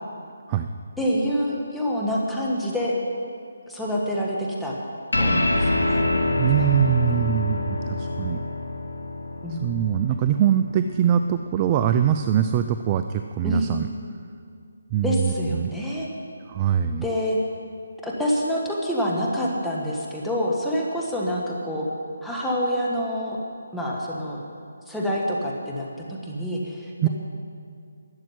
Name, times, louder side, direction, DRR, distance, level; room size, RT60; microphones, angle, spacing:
voice 1, 1.0-2.9 3.7-4.7 5.2-6.0 6.5-7.2 9.4-9.8 13.4-13.8 15.0-16.1 17.0-17.4 18.0-21.9 22.2-23.4 23.7-24.4 24.9-27.1, equal, ahead, -6 dB, 1.5 m, -27 dB
sound 1, 5.1-11.9, left 2 dB, 85° left, 1.6 m, -26 dB
voice 2, 6.4-8.4 9.6-13.9 14.9-15.7 16.5-17.0 27.0-27.1, right 9 dB, 25° right, 9 dB, 0.4 m, -23 dB
12.0 x 7.4 x 9.6 m, 2.3 s
figure-of-eight pair, 155°, 0 cm